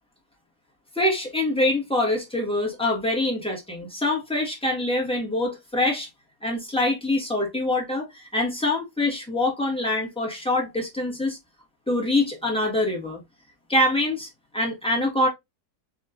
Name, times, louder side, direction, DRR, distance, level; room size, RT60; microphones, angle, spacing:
voice 1, 0.9-6.1 6.4-11.4 11.9-13.2 13.7-15.3, left 1 dB, 5° left, 1.6 m, -25 dB
6.3 x 2.9 x 2.6 m
omnidirectional pair, 1.7 m